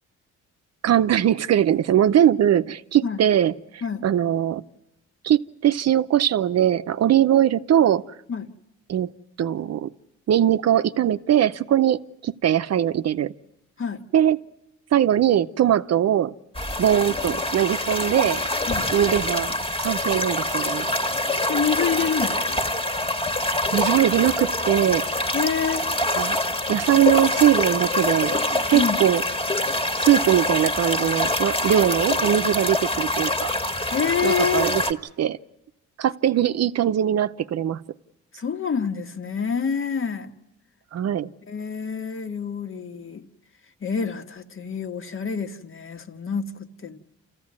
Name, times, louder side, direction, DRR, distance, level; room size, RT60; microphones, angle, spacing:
voice 1, 0.8-4.6 5.2-8.2 8.9-9.1 9.4-9.9 10.3-13.3 14.1-14.4 14.9-16.3 16.8-18.4 18.9-20.9 23.7-25.3 26.2-26.4 26.7-28.4 28.7-29.2 30.0-33.5 34.2-34.8 35.2-35.4 36.0-37.8 40.9-41.3, right 10 dB, 55° right, 0.7 m, -21 dB
sound 1, 16.5-34.9, left 1 dB, 15° left, 1.8 m, -25 dB
voice 2, 21.4-22.7 25.3-25.9 28.7-29.0 33.9-34.7 38.4-40.3 41.5-43.3 43.8-47.0, left 6 dB, 45° left, 1.7 m, -27 dB
28.0 x 15.0 x 9.6 m
cardioid pair, 90°, 30 cm